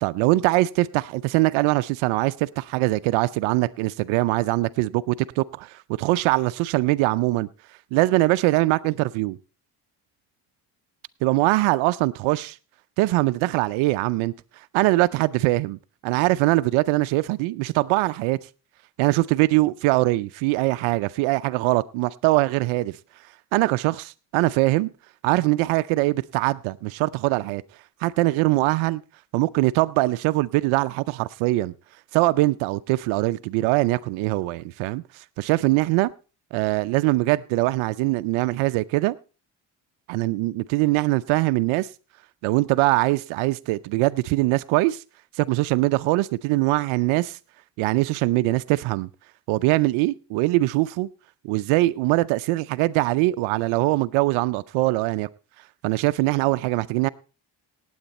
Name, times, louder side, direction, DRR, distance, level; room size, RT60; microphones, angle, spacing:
voice 1, 0.0-9.4 11.2-12.6 13.0-15.8 16.0-18.5 19.0-23.0 23.2-24.9 25.2-27.6 28.0-29.0 29.3-31.7 32.1-36.1 36.5-39.2 40.1-41.9 42.4-45.0 45.3-47.4 47.8-49.1 49.5-51.1 51.4-55.3 55.8-57.1, right 19 dB, 80° right, 0.5 m, -22 dB
18.0 x 8.0 x 4.1 m
supercardioid pair, 55°, 47 cm